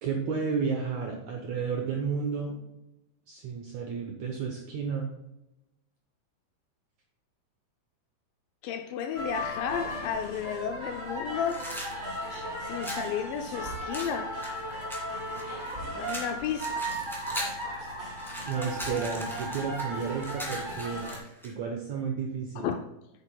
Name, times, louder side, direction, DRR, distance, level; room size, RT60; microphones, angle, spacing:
voice 1, 0.0-2.6 3.3-5.1 18.5-21.0 21.4-22.7, right 5 dB, 75° right, 1.7 m, -32 dB
voice 2, 8.6-11.7 12.6-14.4 15.9-17.0 22.6-22.9, left 8 dB, 80° left, 2.0 m, -33 dB
sound 1, 9.1-21.2, equal, 25° right, 1.0 m, -36 dB
sound 2, 11.4-13.1 13.9-15.7 16.0-17.6 18.0-21.5, equal, ahead, 0.8 m, -39 dB
9.7 x 8.1 x 2.3 m
omnidirectional pair, 4.4 m